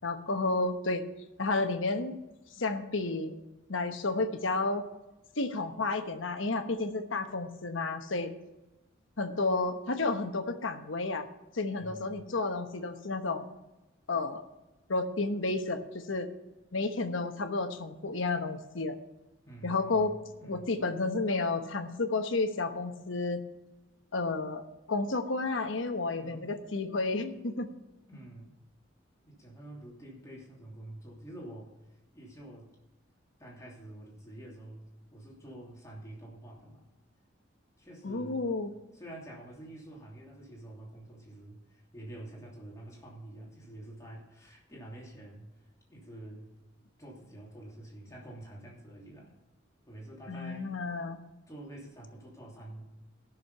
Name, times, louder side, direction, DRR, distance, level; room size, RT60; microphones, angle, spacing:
voice 1, 0.0-1.0 1.4-2.2 2.5-3.3 3.7-4.8 5.4-8.3 9.2-11.3 11.5-13.6 14.1-14.4 14.9-16.3 16.7-18.9 19.6-20.1 20.5-23.4 24.1-24.6 24.9-27.7 38.0-38.7 50.3-51.2, left 3 dB, 85° left, 7 dB, 1.1 m, -31 dB
voice 2, 11.8-12.2 19.5-20.6 26.1-26.5 28.1-28.6 29.2-31.7 32.1-32.7 33.4-36.8 37.8-38.5 38.9-45.5 45.9-46.5 47.0-49.3 49.9-50.7 51.5-52.8, right 1 dB, 15° left, -3 dB, 2.9 m, -47 dB
15.0 x 6.6 x 5.5 m, 1.0 s
head